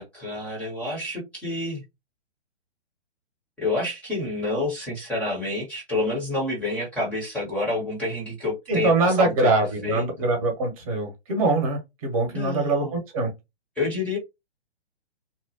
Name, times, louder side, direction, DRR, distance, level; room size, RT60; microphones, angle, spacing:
voice 1, 0.0-1.8 3.6-9.5 9.8-10.0 12.3-12.9 13.8-14.2, left 2 dB, 5° left, 0.8 m, -28 dB
voice 2, 8.7-13.3, right 2 dB, 30° right, 1.0 m, -23 dB
3.0 x 2.1 x 2.8 m
figure-of-eight pair, 125°, 34 cm